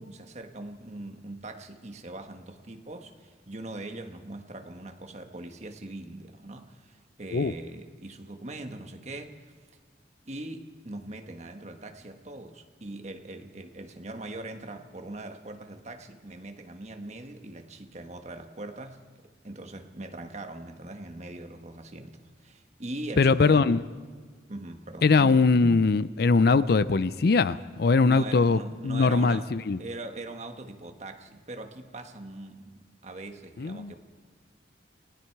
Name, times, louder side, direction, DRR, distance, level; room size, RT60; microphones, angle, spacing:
voice 1, 0.0-3.1 3.5-6.6 7.2-9.3 10.3-19.0 19.4-22.1 22.8-23.7 24.5-25.1 28.0-29.5 29.8-32.7 33.0-34.0, right 2 dB, 40° right, 1.4 m, -41 dB
voice 2, 23.2-23.8 25.0-29.8 33.6-33.9, left 4 dB, 55° left, 0.5 m, -21 dB
29.5 x 18.5 x 4.7 m
head